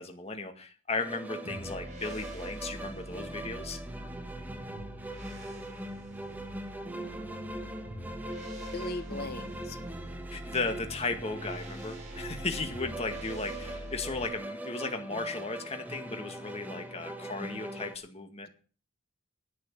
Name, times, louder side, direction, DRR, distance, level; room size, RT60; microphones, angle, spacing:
voice 1, 0.0-3.8 10.3-18.5, left 3 dB, 30° left, 6 dB, 2.0 m, -36 dB
sound 1, 1.0-17.9, right 1 dB, 10° right, 1.5 m, -41 dB
sound 2, 1.4-14.3, right 1 dB, 35° right, 5.3 m, -44 dB
voice 2, 8.7-9.8, left 2 dB, 50° left, 10 dB, 1.5 m, -38 dB
10.5 x 8.7 x 8.6 m, 0.40 s
head